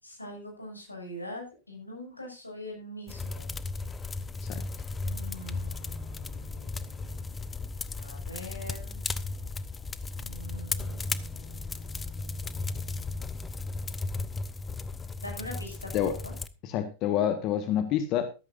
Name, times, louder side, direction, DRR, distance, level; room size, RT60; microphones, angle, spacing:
voice 1, 0.0-3.6 5.0-7.4 8.0-9.0 10.2-13.6 15.2-16.3, equal, 85° left, 2 dB, 6.7 m, -44 dB
sound 1, 3.1-16.5, left 3 dB, 15° left, 0.9 m, -35 dB
voice 2, 16.6-18.3, left 10 dB, 40° left, 9 dB, 1.5 m, -27 dB
14.0 x 14.0 x 2.6 m, 0.29 s
figure-of-eight pair, 90°, 0 cm